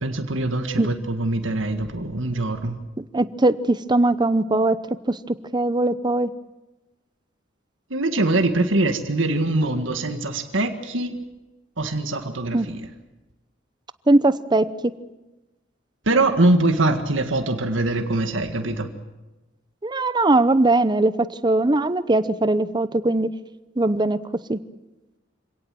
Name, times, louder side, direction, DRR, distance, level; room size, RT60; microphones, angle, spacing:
voice 1, 0.0-2.8 7.9-11.2 11.8-12.8 16.1-18.9, right 2 dB, 80° right, 6 dB, 1.9 m, -23 dB
voice 2, 3.0-4.8 5.1-6.3 12.5-12.7 14.1-14.7 19.8-23.3 23.8-24.2 24.5-24.6, right 2 dB, 25° right, 14 dB, 0.8 m, -20 dB
26.5 x 17.5 x 7.7 m, 1.1 s
head